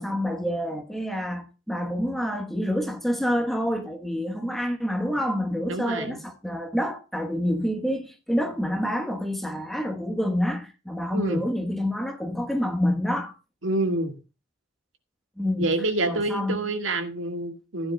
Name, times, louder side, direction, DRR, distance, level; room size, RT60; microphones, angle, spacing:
voice 1, 0.0-13.3 15.4-15.7 16.0-16.6, equal, ahead, 1.0 m, -27 dB
voice 2, 5.7-6.2 11.1-11.4 13.6-14.2 15.6-17.9, right 2 dB, 90° right, 1.6 m, -27 dB
15.0 x 9.8 x 2.2 m
head